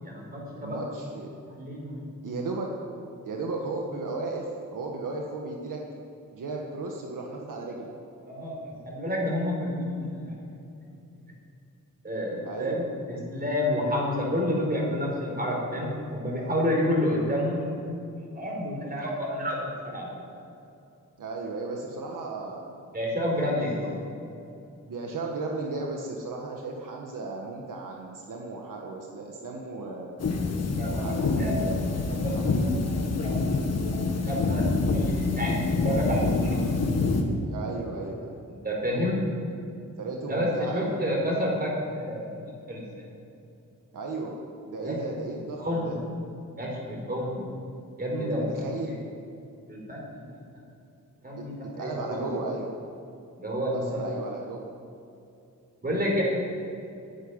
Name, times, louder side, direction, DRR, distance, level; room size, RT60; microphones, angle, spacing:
voice 1, 0.0-0.8 1.5-2.0 8.2-10.6 12.0-17.7 18.3-20.2 22.9-23.9 30.8-31.7 32.2-33.6 34.2-35.6 35.8-36.6 38.6-39.2 40.3-43.0 44.8-46.0 46.5-47.5 48.0-48.7 49.7-50.2 51.2-52.3 53.4-54.1 55.8-56.2, equal, 30° right, -2 dB, 4.6 m, -30 dB
voice 2, 0.6-1.3 2.2-2.7 3.2-5.8 6.3-7.9 12.4-12.8 21.2-22.7 23.3-24.0 24.9-30.2 30.9-31.8 32.2-32.7 37.5-38.4 40.0-41.0 43.9-44.4 44.7-46.0 48.3-49.0 51.4-51.5 51.7-52.7 53.7-54.7, right 3 dB, 75° right, 0 dB, 1.6 m, -35 dB
sound 1, 30.2-37.2, left 3 dB, 50° left, 1.7 m, -26 dB
11.5 x 10.0 x 9.8 m, 2.6 s
wide cardioid pair, 120°, 32 cm